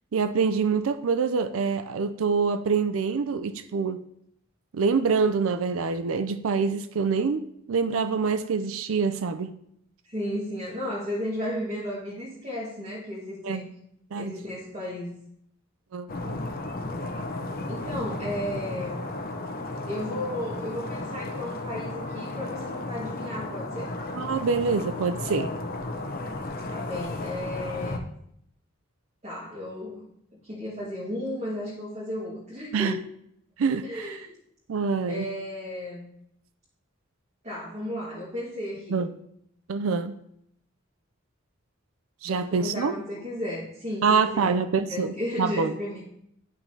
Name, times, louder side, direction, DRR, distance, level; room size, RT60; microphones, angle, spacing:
voice 1, 0.1-4.0 4.7-9.5 13.4-13.6 14.1-14.3 15.9-16.4 24.1-25.5 32.7-33.0 33.6-34.2 34.7-35.3 38.9-39.1 39.7-40.1 42.2-42.9 44.0-45.7, right 5 dB, 90° right, 10 dB, 0.4 m, -25 dB
voice 2, 10.0-13.7 14.2-15.1 17.7-19.1 19.9-23.9 26.7-28.1 29.2-30.1 30.4-33.0 33.8-34.3 35.1-36.1 37.4-39.0 42.3-44.6 44.9-46.0, left 1 dB, 35° right, -7 dB, 1.8 m, -34 dB
sound 1, 16.1-28.0, left 2 dB, 45° left, 0.7 m, -34 dB
11.0 x 5.8 x 2.8 m, 0.73 s
head